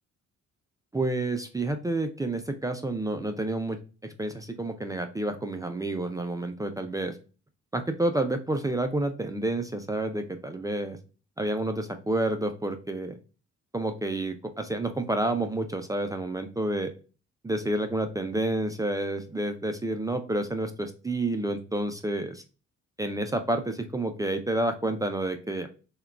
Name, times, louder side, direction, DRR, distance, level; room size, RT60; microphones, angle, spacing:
voice 1, 0.9-7.2 7.7-11.0 11.4-13.2 13.7-16.9 17.4-22.4 23.0-25.7, right 2 dB, 10° right, 7 dB, 0.3 m, -29 dB
3.6 x 2.2 x 2.3 m, 0.34 s
cardioid pair, 90°, 30 cm